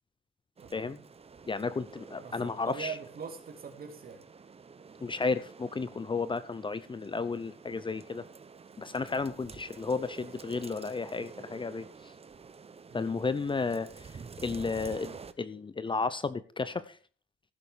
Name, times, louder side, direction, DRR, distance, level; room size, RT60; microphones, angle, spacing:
sound 1, 0.6-15.3, right 5 dB, 30° right, 0.9 m, -49 dB
voice 1, 0.6-1.0 2.2-4.2 12.9-13.1, right 6 dB, 50° right, 2.6 m, -42 dB
voice 2, 1.5-2.9 5.0-8.3 8.8-12.1 12.9-17.0, left 4 dB, 25° left, 0.7 m, -33 dB
15.5 x 6.9 x 5.0 m
cardioid pair, 90°, 20 cm